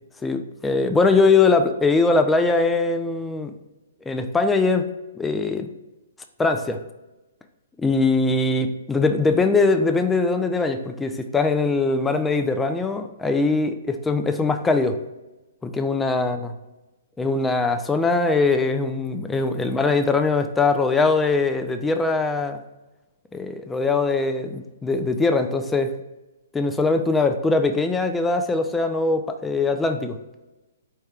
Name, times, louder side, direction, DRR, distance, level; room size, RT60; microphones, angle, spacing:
voice 1, 0.2-3.5 4.1-4.9 5.2-5.7 6.4-6.8 7.8-15.0 15.6-16.4 17.2-22.6 23.3-25.9 26.5-30.2, left 3 dB, 10° left, 7 dB, 0.3 m, -21 dB
4.7 x 2.2 x 4.3 m, 1.0 s
hypercardioid pair, 140°, 0 cm